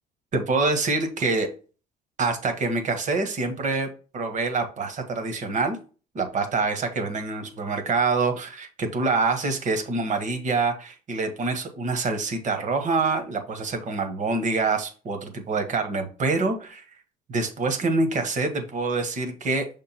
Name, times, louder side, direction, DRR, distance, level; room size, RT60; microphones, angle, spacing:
voice 1, 0.3-1.5 2.2-3.9 4.1-5.8 6.1-16.8 17.3-19.7, right 3 dB, 45° right, 5 dB, 1.5 m, -26 dB
6.6 x 3.7 x 4.4 m, 0.36 s
cardioid pair, 110°, 17 cm